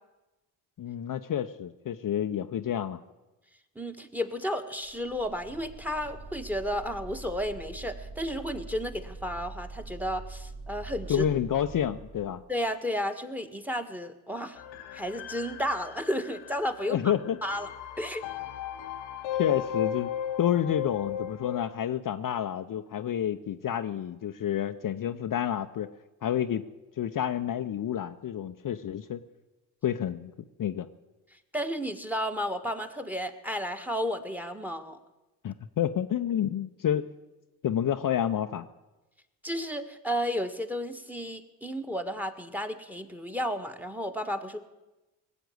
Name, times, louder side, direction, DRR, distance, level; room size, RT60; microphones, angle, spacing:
voice 1, 0.8-3.0 11.1-12.4 16.8-17.4 19.3-20.1 20.4-25.9 26.2-26.6 27.0-29.2 29.8-30.3 30.6-30.9 35.4-37.0 37.6-38.7, left 10 dB, 45° left, 8 dB, 0.8 m, -29 dB
voice 2, 3.7-11.3 12.5-14.6 14.9-17.0 17.4-17.7 18.0-18.2 31.5-35.0 39.4-44.7, equal, 5° right, 9 dB, 1.6 m, -32 dB
sound 1, 4.8-12.5, right 3 dB, 40° right, 3.7 m, -44 dB
sound 2, 14.6-21.7, left 9 dB, 75° left, 1.1 m, -35 dB
19.0 x 8.1 x 7.9 m, 1.1 s
hypercardioid pair, 55°, 46 cm